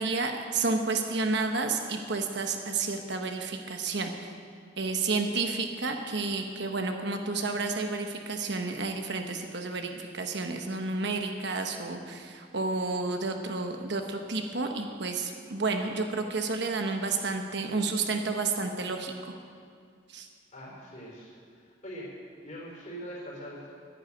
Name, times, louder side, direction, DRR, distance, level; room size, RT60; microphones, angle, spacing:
voice 1, 0.0-4.3 4.8-19.1 20.1-20.3, right 3 dB, 60° right, 4 dB, 1.1 m, -31 dB
voice 2, 20.5-22.1 22.4-23.7, equal, 40° left, -3 dB, 4.3 m, -43 dB
10.5 x 10.5 x 8.7 m, 2.2 s
head